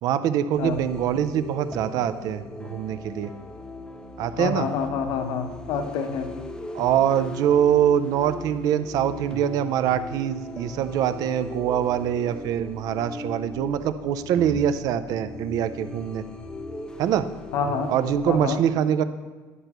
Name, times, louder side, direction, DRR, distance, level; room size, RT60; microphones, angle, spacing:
voice 1, 0.0-3.3 4.2-4.7 6.7-16.2 17.0-17.2 17.9-19.0, right 9 dB, 55° right, 12 dB, 0.4 m, -24 dB
sound 1, 0.5-18.5, left 2 dB, 10° left, 0.5 m, -39 dB
voice 2, 4.4-6.3 17.5-17.9 18.3-18.6, left 5 dB, 60° left, 7 dB, 0.8 m, -27 dB
11.0 x 6.6 x 3.0 m, 1.4 s
cardioid pair, 130°, 7 cm